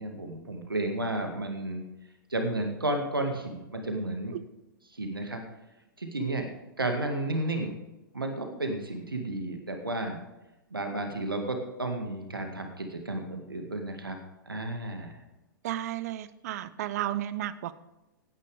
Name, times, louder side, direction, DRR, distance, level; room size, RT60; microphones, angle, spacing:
voice 1, 0.0-1.8 2.3-4.3 4.9-5.4 6.0-6.5 6.8-7.7 8.1-10.2 10.7-14.2 14.5-15.2, right 2 dB, 85° right, 4 dB, 1.9 m, -32 dB
voice 2, 15.6-17.7, right 12 dB, 45° right, 16 dB, 0.8 m, -33 dB
16.0 x 9.9 x 3.5 m, 1.0 s
figure-of-eight pair, 105°, 12 cm